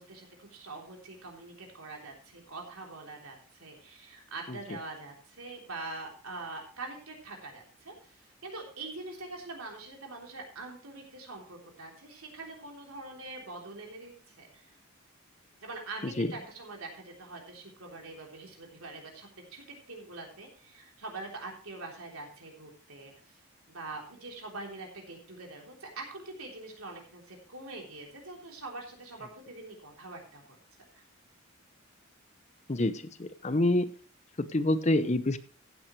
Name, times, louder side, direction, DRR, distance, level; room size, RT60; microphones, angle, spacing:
voice 1, 0.0-14.7 15.6-23.4 23.7-30.6 30.9-31.0, right 3 dB, 90° right, 0 dB, 3.5 m, -44 dB
voice 2, 4.5-4.8 16.0-16.3 32.7-33.9 34.4-35.4, left 1 dB, 30° left, 13 dB, 0.6 m, -27 dB
15.0 x 8.9 x 3.2 m, 0.40 s
head